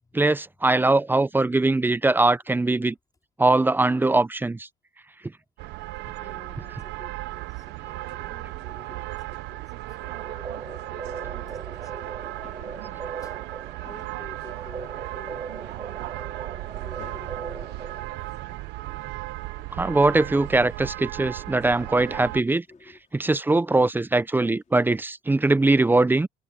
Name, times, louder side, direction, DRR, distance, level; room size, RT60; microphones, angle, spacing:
voice 1, 0.1-3.0 3.4-4.7 19.8-22.6 23.1-26.3, right 2 dB, 10° right, 0.5 m, -21 dB
sound 1, 5.6-22.4, right 18 dB, 90° right, 0.9 m, -36 dB
sound 2, 6.0-25.0, left 8 dB, 50° left, 5.4 m, -60 dB
voice 2, 6.2-12.3 12.6-13.4 13.8-16.4 16.8-18.2 18.5-18.6 21.3-21.5 22.7-23.0, left 3 dB, 20° left, 4.0 m, -50 dB
sound 3, 10.0-18.4, right 5 dB, 30° right, 3.6 m, -40 dB
cardioid pair, 110°, 17 cm